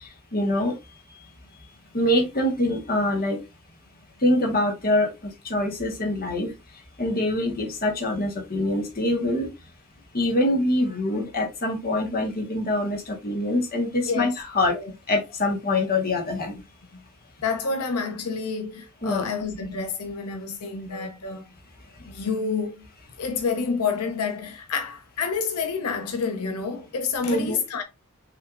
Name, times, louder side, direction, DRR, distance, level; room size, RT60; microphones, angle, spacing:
voice 1, 0.3-0.7 1.9-3.4 4.2-5.1 5.4-6.5 7.0-9.5 10.1-14.3 14.5-14.7 15.1-16.5 19.0-19.2 20.9-21.1 27.2-27.6, left 1 dB, 45° left, 1.3 m, -24 dB
voice 2, 14.0-14.3 14.7-14.9 15.5-15.6 16.9-17.0 17.4-21.5 22.0-22.9 23.2-27.8, left 5 dB, 85° left, 0.7 m, -28 dB
6.0 x 3.2 x 2.4 m
head